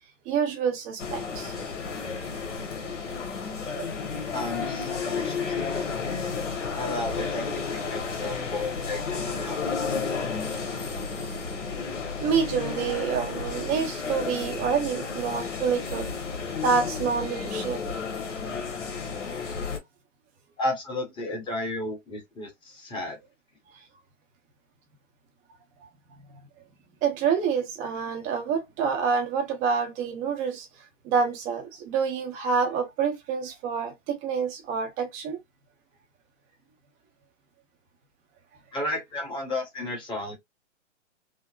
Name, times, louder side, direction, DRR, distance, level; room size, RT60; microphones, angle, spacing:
voice 1, 0.3-1.5 2.6-2.7 3.8-3.9 12.2-16.1 16.6-17.9 27.0-30.7 31.0-35.4, right 6 dB, 20° right, 0.7 m, -27 dB
sound 1, 1.0-19.8, left 5 dB, 70° left, 1.3 m, -32 dB
voice 2, 4.3-5.5 6.8-9.9 20.6-23.2 38.7-40.3, left 2 dB, 15° left, 1.1 m, -33 dB
3.8 x 2.0 x 2.4 m
hypercardioid pair, 135°, 37 cm